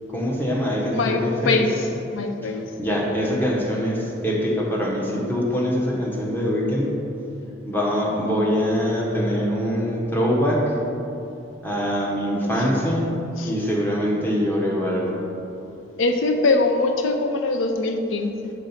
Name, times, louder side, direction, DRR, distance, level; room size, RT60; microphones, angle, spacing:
voice 1, 0.1-1.6 2.4-2.5 2.8-6.9 7.7-10.6 11.6-13.1 13.4-15.1, equal, 10° left, -3 dB, 0.9 m, -23 dB
voice 2, 0.9-2.6 13.4-13.5 16.0-18.5, left 3 dB, 80° left, 5 dB, 0.4 m, -22 dB
6.1 x 3.9 x 5.6 m, 2.9 s
head